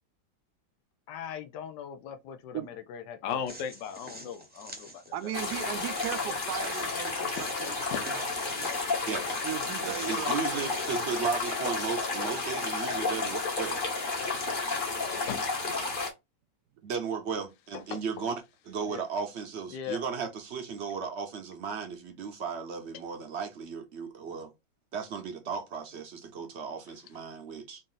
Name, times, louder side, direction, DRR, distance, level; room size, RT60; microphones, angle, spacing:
voice 1, 1.1-3.4 18.9-19.0 19.7-20.0 22.9-23.1, left 8 dB, 85° left, 1.3 m, -40 dB
voice 2, 3.2-5.0 5.7-5.8 7.9-8.0 15.3-15.4 17.9-18.0, left 8 dB, 60° left, 0.9 m, -36 dB
sound 1, 3.5-13.1, right 1 dB, 10° right, 0.5 m, -49 dB
voice 3, 5.1-8.8 9.4-10.6 10.9-11.1, right 12 dB, 75° right, 1.1 m, -38 dB
sound 2, 5.3-16.1, left 3 dB, 40° left, 0.9 m, -32 dB
voice 4, 9.8-13.8 16.8-24.5 24.9-27.8, right 6 dB, 60° right, 0.7 m, -35 dB
3.9 x 2.5 x 3.8 m
omnidirectional pair, 1.8 m